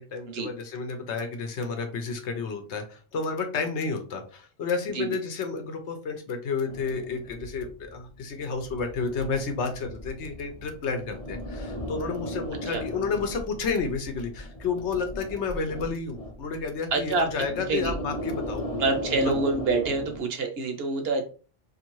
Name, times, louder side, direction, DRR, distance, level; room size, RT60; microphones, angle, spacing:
voice 1, 0.0-18.6 19.2-19.3, left 4 dB, 70° left, 5 dB, 0.9 m, -31 dB
sound 1, 6.7-20.2, equal, 35° left, 0.7 m, -37 dB
voice 2, 16.9-17.3 17.7-18.0 18.8-21.2, right 3 dB, 60° right, 4 dB, 0.8 m, -26 dB
2.6 x 2.5 x 3.0 m, 0.36 s
omnidirectional pair, 1.2 m